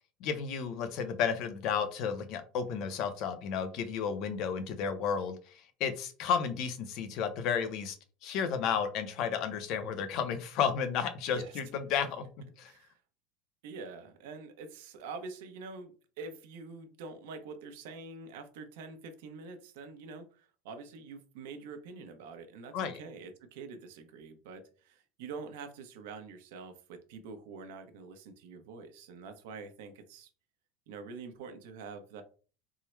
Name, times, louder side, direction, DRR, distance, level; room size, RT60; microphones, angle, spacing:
voice 1, 0.2-8.0 8.2-12.7 22.7-23.0, left 7 dB, 45° left, 9 dB, 0.6 m, -32 dB
voice 2, 12.7-13.0 13.6-30.3 30.9-32.2, right 4 dB, 80° right, 7 dB, 0.8 m, -46 dB
3.6 x 2.1 x 4.4 m, 0.37 s
cardioid pair, 175°, 0 cm